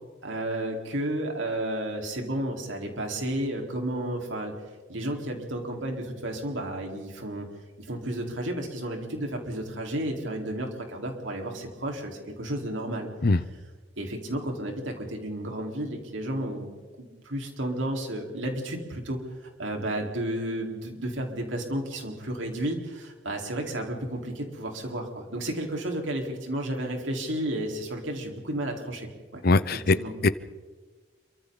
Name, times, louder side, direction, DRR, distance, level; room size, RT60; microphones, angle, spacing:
voice 1, 0.2-4.5 4.9-7.5 7.8-13.1 14.0-29.4 29.7-30.2, right 1 dB, 90° right, 1 dB, 4.3 m, -32 dB
voice 2, 29.4-30.0 30.2-30.3, left 3 dB, 55° left, 14 dB, 0.7 m, -20 dB
27.5 x 24.5 x 4.0 m, 1.4 s
head